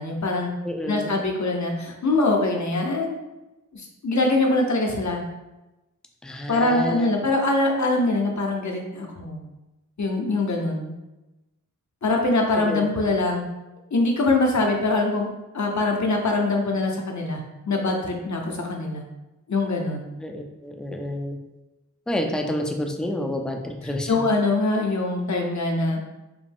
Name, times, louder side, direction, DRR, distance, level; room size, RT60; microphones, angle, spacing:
voice 1, 0.0-0.5 0.9-3.2 3.7-5.2 6.5-9.4 10.0-10.9 12.0-13.4 13.9-15.3 15.5-17.4 17.7-19.0 19.5-20.0 24.1-26.0, left 2 dB, 60° left, 1 dB, 0.8 m, -23 dB
voice 2, 0.6-1.1 6.2-7.2 12.5-12.9 20.2-21.4 22.1-24.3, left 1 dB, ahead, 2 dB, 0.4 m, -29 dB
4.8 x 2.1 x 3.5 m, 1.0 s
wide cardioid pair, 75°, 33 cm